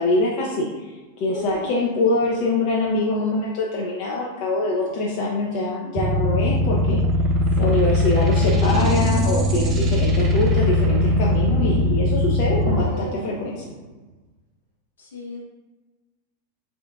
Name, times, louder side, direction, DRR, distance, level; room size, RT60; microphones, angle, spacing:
voice 1, 0.0-7.0 7.6-13.6, left 2 dB, 45° left, -3 dB, 0.6 m, -24 dB
sound 1, 1.3-2.8 4.5-5.6 8.5-9.3 12.5-14.1, right 3 dB, 75° right, 1.2 m, -37 dB
sound 2, 6.0-12.8, left 1 dB, 30° right, 0.5 m, -20 dB
voice 2, 7.6-8.1 15.0-15.4, left 3 dB, 65° left, -3 dB, 1.1 m, -38 dB
3.7 x 3.7 x 2.4 m, 1.2 s
figure-of-eight pair, 90°, 0 cm